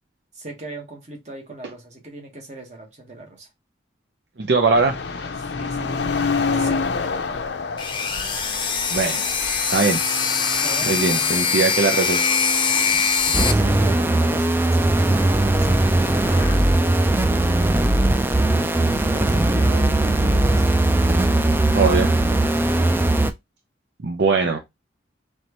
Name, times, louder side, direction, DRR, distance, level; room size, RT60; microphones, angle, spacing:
voice 1, 0.3-3.5 5.4-6.9 10.6-12.2 12.7-16.7 19.1-20.8, right 2 dB, 40° right, 1.4 m, -39 dB
voice 2, 4.4-5.3 8.9-9.3 9.7-10.0 10.9-12.3 21.7-22.2 24.0-24.6, right 4 dB, 65° right, 0.6 m, -21 dB
sound 1, 4.7-11.8 12.1-12.2 12.8-13.3 13.7-13.8 15.8-16.5, left 4 dB, 65° left, 0.5 m, -28 dB
sound 2, 7.8-13.5, left 5 dB, 25° left, 0.7 m, -22 dB
sound 3, 13.3-23.3, right 1 dB, 10° right, 0.3 m, -19 dB
4.4 x 3.3 x 3.0 m
head